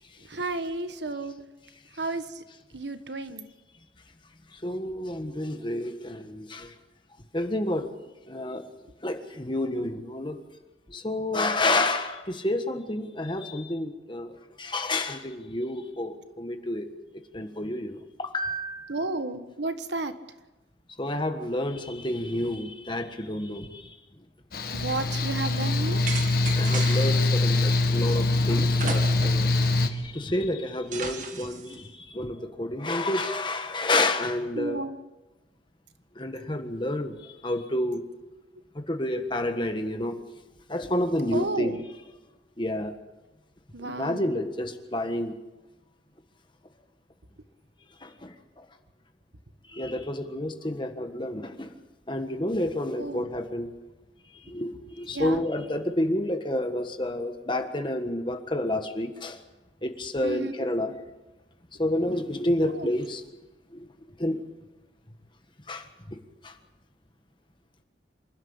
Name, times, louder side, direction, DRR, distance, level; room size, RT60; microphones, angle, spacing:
voice 1, 0.2-1.4 2.0-2.4 2.7-3.5 5.3-5.7 18.9-20.1 24.7-26.0 34.6-35.0 41.3-41.9 43.7-44.3 53.0-53.3 55.1-55.4 60.2-60.5 62.7-62.9, right 2 dB, 70° right, 9 dB, 1.4 m, -32 dB
voice 2, 4.5-6.7 7.3-7.9 8.3-8.6 9.0-10.4 10.9-16.9 17.3-19.0 21.0-23.9 26.6-29.5 29.9-34.8 36.1-38.0 38.7-40.2 40.7-41.8 42.6-42.9 43.8-45.4 48.0-48.6 49.7-51.8 52.1-53.7 54.4-59.4 59.8-60.9 61.8-63.2 63.7-63.9 64.2-64.4 65.7-66.2 66.4-66.6, left 1 dB, 25° left, 6 dB, 1.5 m, -29 dB
Mechanical fan, 24.5-29.9, left 2 dB, 55° left, 1.7 m, -23 dB
sound 1, 26.1-27.3 28.8-29.5 29.9-30.0 30.9-31.8, right 5 dB, 45° right, 1.8 m, -36 dB
27.0 x 12.0 x 8.8 m, 1.1 s
head